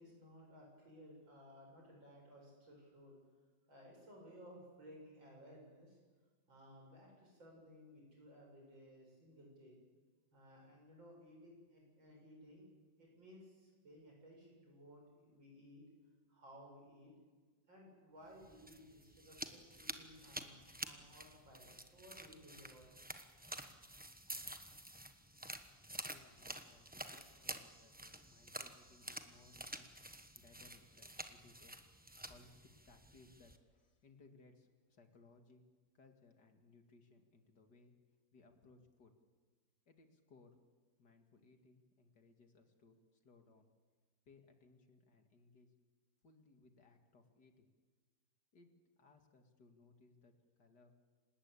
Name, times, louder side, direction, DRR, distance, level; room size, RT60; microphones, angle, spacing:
voice 1, 0.0-3.2 3.7-6.0 6.5-9.8 10.3-12.6 13.0-15.8 16.3-17.1 17.7-23.0, equal, 80° right, -1 dB, 8.5 m, -59 dB
sound 1, 18.4-33.6, right 1 dB, 5° right, 0.8 m, -50 dB
voice 2, 26.1-31.8 32.2-35.6 35.9-37.9 38.3-39.1 39.9-40.6 41.0-43.7 44.3-45.7 46.2-47.7 48.5-48.7 49.0-50.3 50.6-50.9, left 3 dB, 60° left, 5 dB, 2.7 m, -65 dB
27.5 x 19.0 x 8.5 m, 1.4 s
omnidirectional pair, 2.1 m